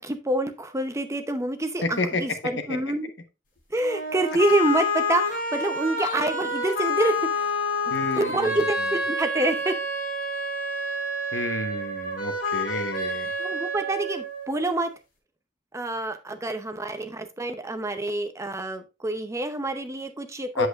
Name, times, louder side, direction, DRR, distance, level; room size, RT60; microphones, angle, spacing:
voice 1, 0.0-3.1 3.7-7.5 8.1-9.8 13.4-14.9 15.7-20.7, right 2 dB, 15° right, 8 dB, 0.7 m, -27 dB
sound 1, 3.8-14.8, left 1 dB, 50° left, 3.8 m, -28 dB
voice 2, 7.9-8.5 11.3-13.3 20.6-20.7, left 3 dB, 70° left, 8 dB, 1.2 m, -30 dB
8.3 x 7.7 x 2.5 m, 0.26 s
head